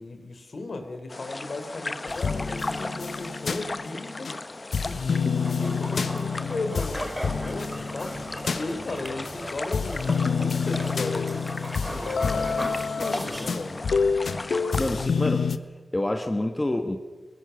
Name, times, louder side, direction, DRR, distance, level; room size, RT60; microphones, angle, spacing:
voice 1, 0.0-4.3 4.8-8.1 8.5-13.8, left 2 dB, 65° left, 7 dB, 3.5 m, -36 dB
sound 1, 1.1-15.1, left 2 dB, 35° left, 0.9 m, -37 dB
sound 2, 2.1-4.4 4.7-9.4 9.7-15.6, left 5 dB, 80° left, 0.9 m, -28 dB
sound 3, 5.4-14.0, equal, 15° right, 5.7 m, -38 dB
voice 2, 14.8-15.5 15.9-17.0, left 1 dB, 20° left, 5 dB, 1.5 m, -27 dB
22.0 x 21.0 x 7.1 m, 1.4 s
wide cardioid pair, 85°, 0 cm